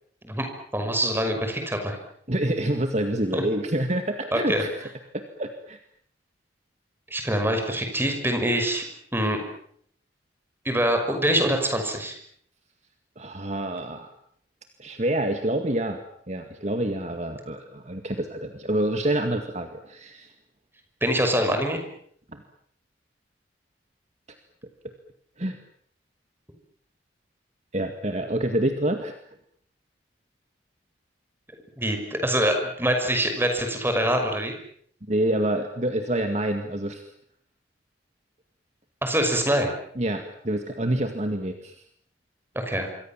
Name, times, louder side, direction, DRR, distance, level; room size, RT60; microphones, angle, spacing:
voice 1, 0.7-2.0 3.3-3.4 4.3-4.6 7.1-8.8 9.1-9.4 10.6-12.1 21.0-21.8 31.8-34.5 39.0-39.7 42.5-42.9, right 1 dB, 10° right, 5 dB, 5.8 m, -24 dB
voice 2, 2.3-4.7 5.1-5.8 13.2-14.1 14.8-16.0 16.3-20.3 22.3-22.4 25.4-25.6 27.7-29.2 35.1-37.0 40.0-41.7, right 1 dB, 40° right, 6 dB, 2.1 m, -27 dB
27.0 x 23.5 x 7.5 m, 0.64 s
head